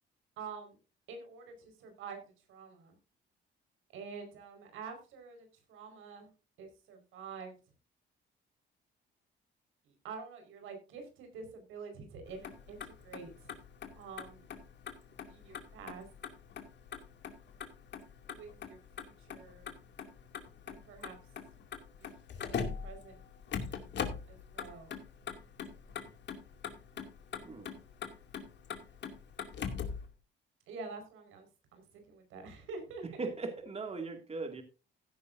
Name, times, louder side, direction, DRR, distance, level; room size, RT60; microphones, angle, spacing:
voice 1, 0.4-0.8 1.1-3.0 3.9-6.3 6.6-7.5 9.8-13.5 13.9-14.4 15.3-16.1 18.3-19.7 20.6-21.2 22.0-22.1 22.5-23.2 24.3-24.9 30.7-33.0, right 5 dB, 90° right, 4.8 m, -47 dB
Motor vehicle (road), 12.3-30.1, left 6 dB, 65° left, 2.5 m, -42 dB
voice 2, 33.2-34.6, right 3 dB, 30° right, 2.3 m, -39 dB
15.5 x 11.0 x 2.6 m
cardioid pair, 90°, 20 cm